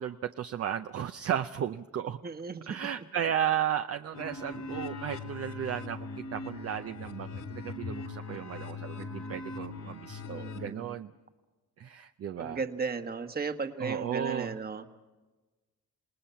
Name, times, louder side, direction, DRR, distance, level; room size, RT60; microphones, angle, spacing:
voice 1, 0.0-2.2 2.7-11.1 11.8-12.6 13.8-14.5, right 9 dB, 50° right, 8 dB, 0.7 m, -34 dB
voice 2, 2.2-2.7 10.3-11.0 12.4-14.9, right 4 dB, 30° right, 8 dB, 1.4 m, -35 dB
sound 1, 4.1-10.7, left 3 dB, 65° left, 3.0 m, -40 dB
28.0 x 18.5 x 5.7 m, 1.2 s
cardioid pair, 90°, 30 cm